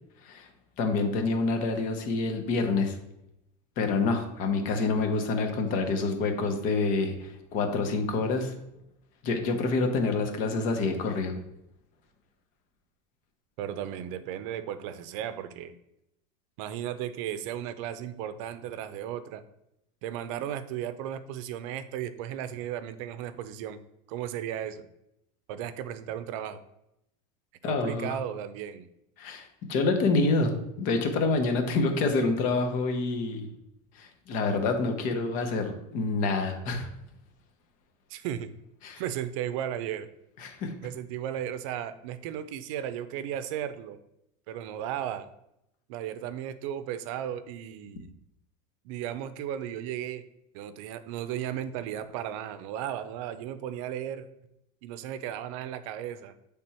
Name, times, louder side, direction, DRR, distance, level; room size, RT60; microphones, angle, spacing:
voice 1, 0.8-3.0 3.8-8.5 9.2-11.3 27.6-28.2 29.2-33.5 34.0-36.9 38.8-39.0 40.4-40.7, left 3 dB, 50° left, 6 dB, 1.1 m, -27 dB
voice 2, 13.6-15.7 16.6-19.4 20.0-23.8 24.1-24.9 25.5-26.6 27.6-28.9 38.1-38.5 39.0-40.1 40.8-44.0 44.5-45.3 45.9-48.1 48.8-50.2 50.5-54.3 54.8-56.3, right 10 dB, 70° right, 13 dB, 0.6 m, -35 dB
7.7 x 3.5 x 4.3 m, 0.83 s
cardioid pair, 155°, 17 cm